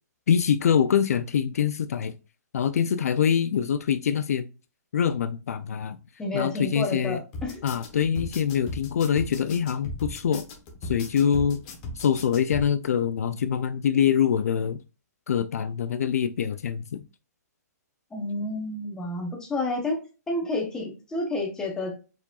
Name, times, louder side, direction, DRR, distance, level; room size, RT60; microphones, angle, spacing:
voice 1, 0.3-2.1 2.5-4.5 4.9-6.0 6.3-7.2 7.6-10.5 10.8-11.6 12.0-14.8 15.3-17.0, left 8 dB, 60° left, 0.4 m, -24 dB
voice 2, 6.2-7.6 18.1-20.0 20.3-21.9, left 2 dB, 5° left, 0.8 m, -30 dB
sound 1, 7.3-12.6, left 2 dB, 25° left, 1.1 m, -37 dB
4.7 x 4.1 x 2.3 m
hypercardioid pair, 165°, 9 cm